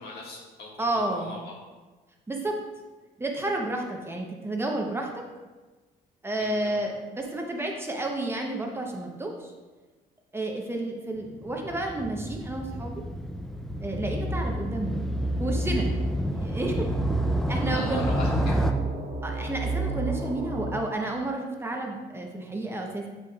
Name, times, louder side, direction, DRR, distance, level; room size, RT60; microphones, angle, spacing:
voice 1, 0.0-1.5 6.4-6.8 17.7-18.6, left 3 dB, 70° left, -3 dB, 1.7 m, -40 dB
voice 2, 0.8-1.4 2.3-2.6 3.2-5.1 6.2-9.5 10.3-13.0 13.8-15.0 15.4-15.9 16.3-16.9 17.5-18.1 19.2-23.1, right 2 dB, 15° right, 1 dB, 0.8 m, -31 dB
Motorcycle, 11.2-18.7, equal, ahead, 0.4 m, -31 dB
sound 1, 13.5-20.8, right 2 dB, 45° right, 1.0 m, -30 dB
7.7 x 5.8 x 2.3 m, 1.3 s
cardioid pair, 110°, 17 cm